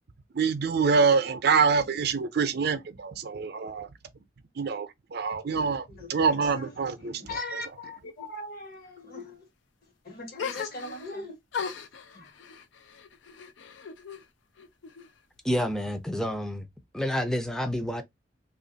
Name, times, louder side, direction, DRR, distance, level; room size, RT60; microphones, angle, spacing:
voice 1, 0.3-3.9 4.6-7.6, right 5 dB, 60° right, 0.6 m, -26 dB
voice 2, 5.9-6.6 7.0-9.4 10.0-11.3 12.1-12.3, left 2 dB, 55° left, 1.2 m, -39 dB
sound 1, 10.4-11.2 11.5-14.3 14.6-15.4, left 6 dB, 75° left, 0.5 m, -38 dB
voice 3, 15.4-16.7 16.9-18.0, equal, 5° left, 0.5 m, -29 dB
3.0 x 2.4 x 3.9 m
head